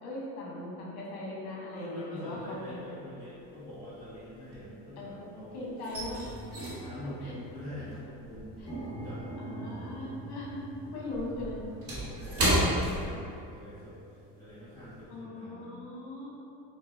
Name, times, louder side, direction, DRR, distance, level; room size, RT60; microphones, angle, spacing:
voice 1, 0.0-2.8 5.0-5.3 5.5-6.2 7.2-7.3 8.6-8.7 9.4-10.6 10.9-11.6 15.1-16.3, left 2 dB, 70° left, -4 dB, 1.0 m, -39 dB
voice 2, 1.7-5.7 6.6-9.9 11.8-14.0 14.4-15.7, left 1 dB, 10° left, -17 dB, 1.4 m, -44 dB
sound 1, 2.4-2.9 3.2-5.2 5.5-10.1 10.4-13.7 14.0-14.2 14.7-15.0, right 1 dB, 35° right, 1.2 m, -33 dB
Piano keys vibration, 3.6-3.7 4.4-4.7 5.1-5.2 5.4-15.1, right 1 dB, 40° left, 1.3 m, -45 dB
4.6 x 2.4 x 2.6 m, 2.6 s
supercardioid pair, 105°, 40 cm